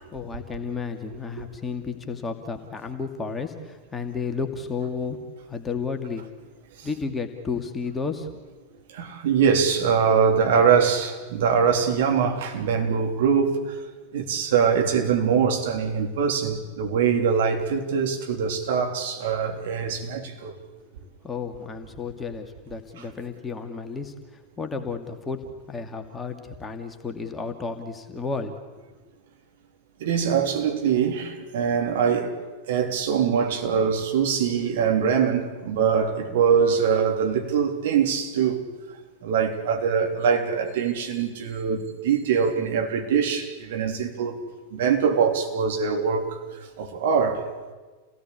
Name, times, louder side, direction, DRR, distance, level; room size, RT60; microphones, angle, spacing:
voice 1, 0.1-5.2 5.5-6.2 6.8-8.3 21.2-28.8, left 5 dB, 15° left, 2.4 m, -32 dB
voice 2, 8.9-13.8 14.1-20.6 30.0-32.3 32.7-38.6 39.2-44.4 44.7-46.4 46.8-47.5, right 6 dB, 55° right, 3.5 m, -23 dB
29.5 x 18.0 x 8.5 m
figure-of-eight pair, 90°, 0 cm